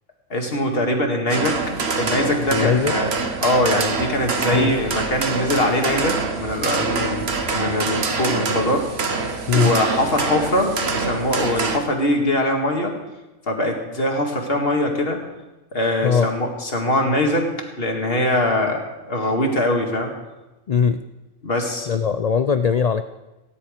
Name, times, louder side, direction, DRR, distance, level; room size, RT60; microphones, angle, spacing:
voice 1, 0.3-1.6 1.9-7.3 7.5-12.9 13.5-15.2 15.7-20.1 21.4-22.0, left 1 dB, 45° left, 2 dB, 2.1 m, -22 dB
sound 1, 1.3-11.8, right 4 dB, 55° right, 1.4 m, -25 dB
voice 2, 2.5-2.9 4.5-4.7 9.5-9.7 16.0-16.3 20.7-21.0 21.9-23.0, left 6 dB, 90° left, 10 dB, 0.3 m, -20 dB
17.5 x 10.5 x 5.0 m, 1.1 s
omnidirectional pair, 1.3 m